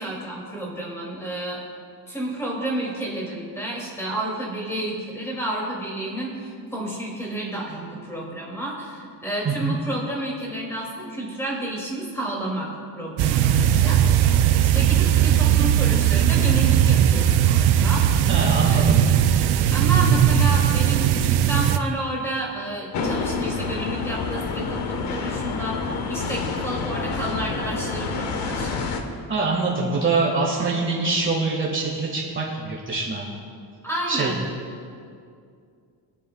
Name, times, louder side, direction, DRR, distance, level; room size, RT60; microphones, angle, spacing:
voice 1, 0.0-1.6 2.1-14.0 14.7-18.1 18.7-18.9 19.7-28.7 33.8-34.5, right 1 dB, 5° left, -4 dB, 2.5 m, -30 dB
sound 1, 13.2-21.8, right 10 dB, 70° right, 0.6 m, -18 dB
voice 2, 18.3-19.0 29.3-33.2 34.1-34.4, right 3 dB, 30° right, -4 dB, 1.7 m, -24 dB
sound 2, 22.9-29.0, left 4 dB, 85° left, 1.4 m, -28 dB
23.5 x 9.5 x 2.3 m, 2.3 s
cardioid pair, 165°, 41 cm